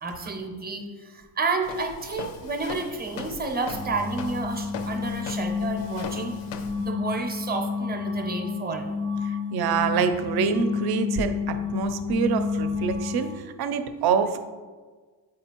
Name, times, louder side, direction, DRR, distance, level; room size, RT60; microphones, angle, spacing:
voice 1, 0.0-6.4 6.8-8.9, right 3 dB, 20° right, 4 dB, 0.6 m, -30 dB
Walk footsteps, 1.6-6.9, left 5 dB, 85° left, 0.6 m, -40 dB
sound 1, 3.7-13.4, left 5 dB, 20° left, 0.3 m, -30 dB
voice 2, 9.2-14.4, right 6 dB, 60° right, 9 dB, 0.6 m, -26 dB
7.7 x 4.9 x 2.9 m, 1.4 s
cardioid pair, 160°, 42 cm